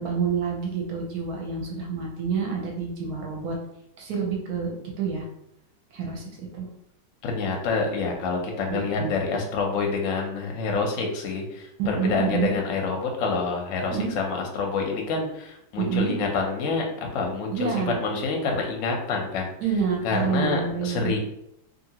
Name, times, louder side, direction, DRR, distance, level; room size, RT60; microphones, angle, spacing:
voice 1, 0.0-3.6 4.0-5.2 5.9-6.7 8.7-9.1 11.8-12.5 13.9-14.1 15.8-16.2 17.5-18.0 19.6-21.2, right 6 dB, 65° right, 0 dB, 1.0 m, -28 dB
voice 2, 7.2-16.8 17.1-17.7 18.0-19.5 20.0-21.2, left 4 dB, 65° left, 1 dB, 0.8 m, -27 dB
2.8 x 2.6 x 2.8 m, 0.78 s
omnidirectional pair, 1.9 m